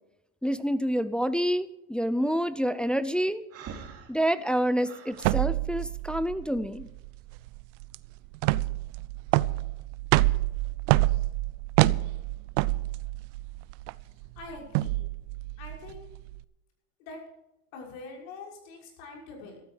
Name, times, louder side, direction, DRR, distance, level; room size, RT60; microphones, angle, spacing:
voice 1, 0.4-3.4 4.1-6.9, equal, 5° left, 13 dB, 0.4 m, -27 dB
Breathing, 3.5-5.3, right 6 dB, 35° right, 2.6 m, -44 dB
sound 1, 5.2-16.4, right 18 dB, 65° right, 0.7 m, -27 dB
voice 2, 14.4-15.1 15.6-16.1 17.0-17.2 17.7-19.6, left 3 dB, 70° left, -1 dB, 6.2 m, -44 dB
14.5 x 12.5 x 4.9 m, 0.87 s
supercardioid pair, 125°, 40 cm